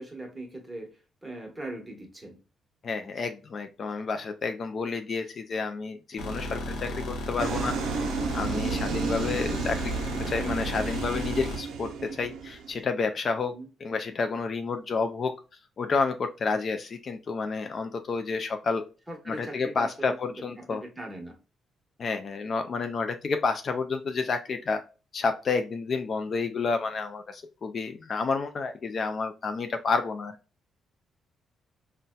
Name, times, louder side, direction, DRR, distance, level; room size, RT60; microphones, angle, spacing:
voice 1, 0.0-2.4 13.4-13.7 19.1-21.4, right 1 dB, 10° right, 0 dB, 1.1 m, -40 dB
voice 2, 2.8-8.0 8.3-9.9 10.3-13.5 13.8-15.3 15.8-18.8 19.3-20.8 22.0-24.8 25.1-30.3, left 4 dB, 45° left, 7 dB, 0.3 m, -30 dB
sound 1, 6.2-11.6, left 1 dB, 90° left, 0.8 m, -34 dB
sound 2, 7.4-12.8, right 5 dB, 90° right, 0.4 m, -32 dB
3.9 x 2.1 x 2.2 m, 0.32 s
cardioid pair, 105°, 0 cm